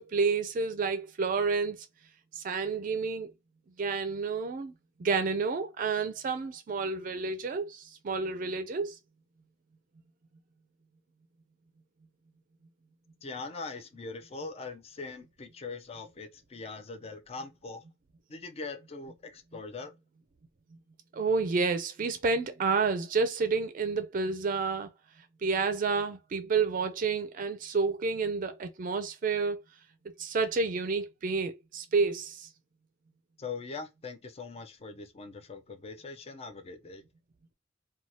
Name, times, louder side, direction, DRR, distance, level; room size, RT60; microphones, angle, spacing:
voice 1, 0.0-1.8 2.3-3.3 3.8-4.7 5.0-9.0 21.1-24.9 25.4-29.6 30.0-32.5, right 4 dB, 45° right, 0.4 m, -30 dB
voice 2, 13.2-17.8 18.3-19.9 33.4-37.0, left 4 dB, 35° left, 0.5 m, -41 dB
2.7 x 2.3 x 2.9 m
head